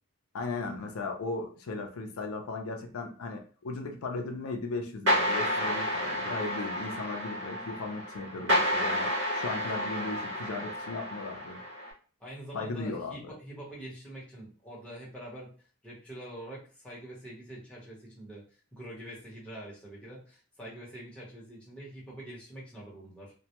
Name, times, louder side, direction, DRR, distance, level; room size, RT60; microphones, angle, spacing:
voice 1, 0.3-11.6 12.5-13.3, left 3 dB, 85° left, 4 dB, 0.4 m, -37 dB
sound 1, 5.1-11.9, equal, 60° right, 0.8 m, -30 dB
voice 2, 12.2-15.5 15.8-18.4 18.7-23.3, right 1 dB, 5° left, -6 dB, 0.8 m, -45 dB
2.1 x 2.1 x 2.8 m, 0.40 s
head